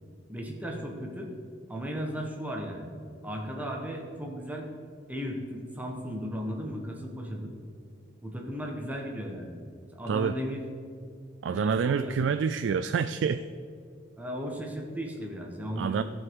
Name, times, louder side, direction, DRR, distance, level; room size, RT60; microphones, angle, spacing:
voice 1, 0.3-1.3 1.7-2.9 3.2-4.7 5.1-7.5 8.2-9.5 9.9-10.6 11.5-12.2 14.2-16.0, equal, 10° right, 0 dB, 1.2 m, -35 dB
voice 2, 11.4-13.4 15.8-16.0, right 6 dB, 85° right, 11 dB, 0.3 m, -27 dB
15.0 x 5.3 x 4.7 m, 2.3 s
head